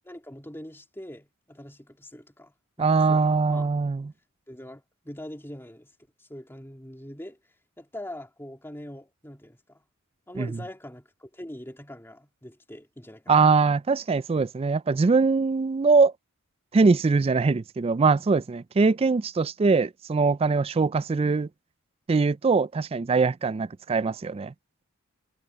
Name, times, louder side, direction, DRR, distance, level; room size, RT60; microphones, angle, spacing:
voice 1, 0.0-3.7 4.5-5.9 6.2-7.4 7.8-9.8 10.3-13.6, left 1 dB, 10° left, 2.6 m, -43 dB
voice 2, 2.8-4.1 10.4-10.5 13.3-16.1 16.7-21.5 22.1-24.5, right 4 dB, 25° right, 0.3 m, -22 dB
head